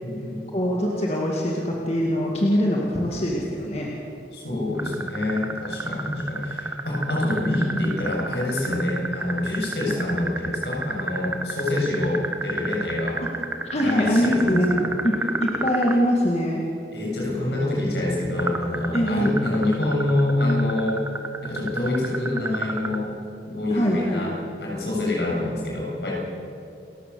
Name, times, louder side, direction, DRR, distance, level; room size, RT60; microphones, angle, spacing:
voice 1, 0.0-0.5 4.3-13.2 13.8-14.9 16.9-21.0 21.4-23.1 23.5-26.1, left 1 dB, 75° left, -3 dB, 7.2 m, -26 dB
voice 2, 0.5-3.9 9.9-10.0 13.2-13.4 13.7-16.6 18.9-19.4 23.7-24.3, equal, 35° left, -2 dB, 2.1 m, -23 dB
sound 1, 4.8-16.0 18.4-23.0, right 3 dB, 15° right, 1.1 m, -30 dB
29.0 x 14.5 x 7.0 m, 2.7 s
head